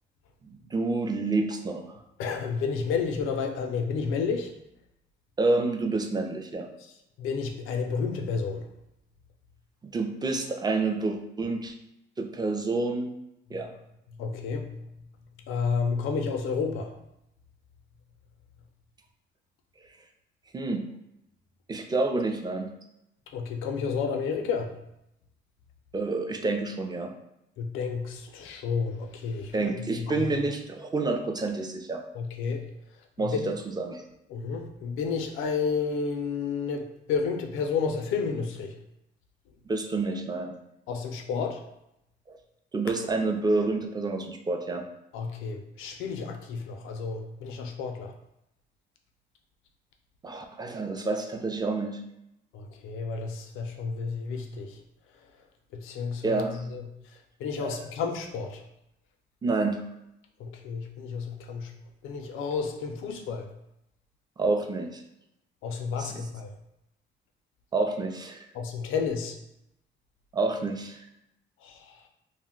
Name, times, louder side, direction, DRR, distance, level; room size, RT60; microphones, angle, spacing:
voice 1, 0.4-1.9 5.4-6.7 9.9-11.7 12.2-13.1 13.5-13.7 20.5-20.8 21.7-22.7 25.9-27.1 29.5-32.0 33.2-34.0 39.7-40.5 42.3-42.4 42.7-44.8 50.2-52.0 56.2-56.6 57.6-57.8 59.4-59.8 64.4-65.0 66.0-66.2 67.7-68.5 70.3-71.0, right 3 dB, 20° right, 4 dB, 0.4 m, -28 dB
voice 2, 2.2-4.5 7.2-8.6 14.2-14.7 15.5-16.9 23.3-24.7 27.6-30.3 32.1-32.6 33.2-33.5 34.3-38.8 40.9-41.6 45.1-48.1 52.5-54.7 55.7-56.4 56.7-56.8 57.4-58.6 60.4-61.7 62.0-63.5 65.6-66.5 68.5-69.4 71.6-71.8, left 5 dB, 90° left, 5 dB, 0.4 m, -31 dB
2.4 x 2.1 x 3.6 m, 0.84 s
cardioid pair, 90°, 20 cm